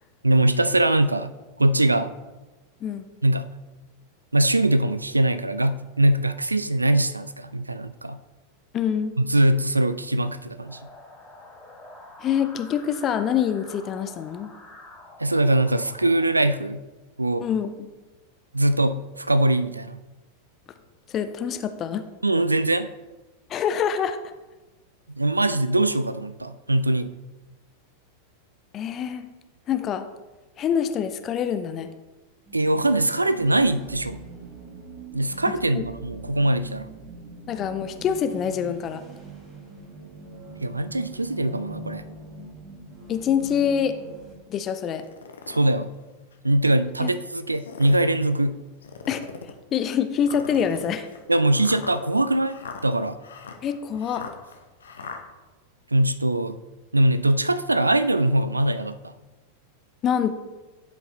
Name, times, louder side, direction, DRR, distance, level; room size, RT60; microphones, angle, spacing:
voice 1, 0.2-1.3 1.6-2.1 3.2-3.5 4.3-8.2 9.2-10.8 15.2-16.8 17.2-17.5 18.5-20.0 22.2-22.9 25.1-27.1 32.5-34.2 35.1-36.9 40.6-42.0 45.5-45.9 46.4-48.6 51.3-52.6 52.8-53.2 55.9-56.6 56.9-59.1, right 1 dB, 80° right, 14 dB, 0.3 m, -22 dB
voice 2, 8.7-9.1 12.2-14.5 17.4-17.7 21.1-22.0 23.5-24.2 28.7-29.3 29.7-30.1 30.6-31.9 35.7-35.8 37.5-39.0 43.1-43.9 44.5-45.0 47.0-47.1 49.1-51.1 53.6-54.2 60.0-60.3, left 8 dB, 30° left, 9 dB, 0.5 m, -25 dB
sound 1, 10.6-16.2, left 2 dB, 5° left, 2.4 m, -47 dB
sound 2, 32.5-44.4, right 2 dB, 25° right, 1.8 m, -43 dB
sound 3, 45.0-45.7 46.3-46.4 47.4-48.1 48.8-49.6 50.2-55.2, left 5 dB, 70° left, 0.8 m, -40 dB
11.5 x 5.2 x 3.2 m, 1.2 s
figure-of-eight pair, 90°, 0 cm